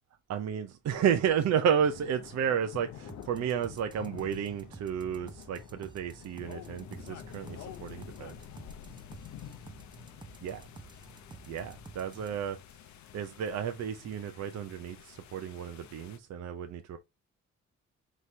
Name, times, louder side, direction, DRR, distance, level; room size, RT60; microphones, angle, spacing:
voice 1, 0.3-8.3 10.4-10.6 11.5-12.6 13.1-17.0, right 8 dB, 60° right, 0.6 m, -32 dB
sound 1, 1.8-16.2, left 10 dB, 70° left, 0.6 m, -49 dB
sound 2, 3.0-12.3, right 3 dB, 15° right, 0.6 m, -51 dB
4.2 x 3.1 x 3.2 m
cardioid pair, 90°, 30 cm